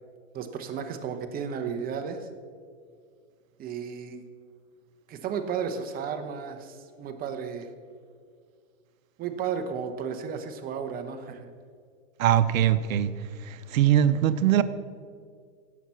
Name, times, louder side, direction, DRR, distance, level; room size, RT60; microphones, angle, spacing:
voice 1, 0.3-2.3 3.6-4.2 5.1-7.7 9.2-11.5, right 7 dB, 20° right, 0.9 m, -33 dB
voice 2, 12.2-13.1 13.4-14.6, right 11 dB, 85° right, 0.7 m, -22 dB
17.0 x 5.9 x 5.6 m
hypercardioid pair, 135°, 39 cm